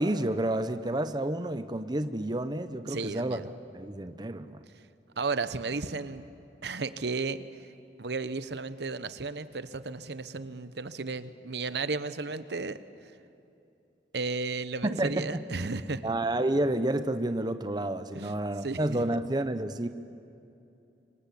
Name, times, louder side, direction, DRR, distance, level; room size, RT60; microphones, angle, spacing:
voice 1, 0.0-3.4 3.7-4.6 14.8-15.4 16.0-19.9, right 1 dB, 25° right, 10 dB, 0.8 m, -30 dB
voice 2, 2.9-3.5 5.2-6.2 6.6-7.4 8.0-12.8 14.1-16.1 18.1-18.3 18.6-19.2, right 3 dB, 70° right, 13 dB, 1.0 m, -34 dB
27.0 x 25.0 x 8.5 m, 2.8 s
head